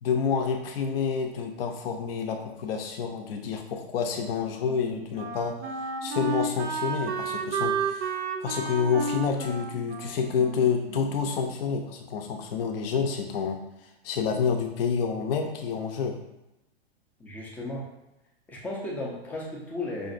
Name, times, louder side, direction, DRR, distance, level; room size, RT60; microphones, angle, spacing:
voice 1, 0.0-5.6 6.0-8.1 8.4-13.6 14.0-16.2, left 6 dB, 60° left, 4 dB, 0.6 m, -28 dB
Wind instrument woodwind instrument, 4.2-11.5, right 4 dB, 85° right, 0.6 m, -32 dB
voice 2, 17.2-17.9 18.5-20.1, left 2 dB, 5° left, -2 dB, 0.3 m, -35 dB
5.0 x 2.5 x 2.5 m, 0.93 s
hypercardioid pair, 125°, 32 cm